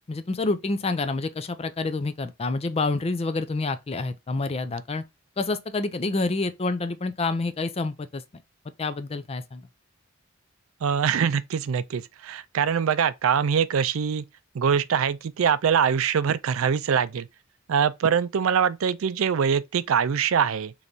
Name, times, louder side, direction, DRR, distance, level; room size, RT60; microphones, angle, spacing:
voice 1, 0.1-5.0 5.4-8.2 8.8-9.6, left 3 dB, 30° left, 0.4 m, -28 dB
voice 2, 10.8-14.3 14.5-17.3 17.7-20.7, right 7 dB, 80° right, 0.4 m, -23 dB
5.1 x 3.0 x 2.7 m
head